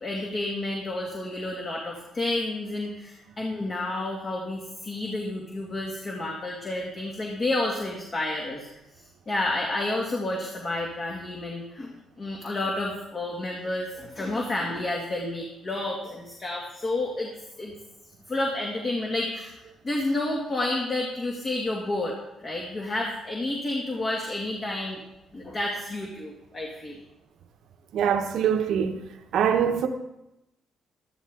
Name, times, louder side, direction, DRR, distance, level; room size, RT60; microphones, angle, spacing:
voice 1, 0.0-8.7 9.3-11.9 12.2-17.3 17.6-17.7 18.3-19.5 19.8-22.1 22.4-25.0 25.3-27.0, left 2 dB, 40° left, 2.3 m, -30 dB
voice 2, 27.9-29.0 29.3-29.9, right 8 dB, 75° right, 1.0 m, -23 dB
13.0 x 12.0 x 3.7 m
cardioid pair, 90°, 0 cm